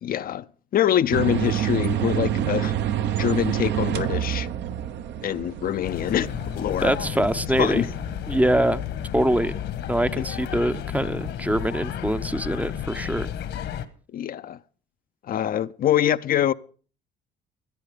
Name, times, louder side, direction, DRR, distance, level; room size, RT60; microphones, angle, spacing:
voice 1, 0.0-0.5 0.7-2.7 3.2-4.5 5.2-6.9 7.6-7.9 10.2-10.3 14.1-14.6 15.2-16.5, left 11 dB, 50° left, 0.6 m, -24 dB
sound 1, 1.1-9.2, right 10 dB, 70° right, 1.0 m, -28 dB
sound 2, 5.8-13.9, left 10 dB, 70° left, 1.5 m, -32 dB
voice 2, 6.8-7.8 8.3-8.8 9.1-9.6 9.9-13.3, right 1 dB, 10° right, 0.6 m, -24 dB
17.5 x 11.5 x 5.1 m
cardioid pair, 95°, 19 cm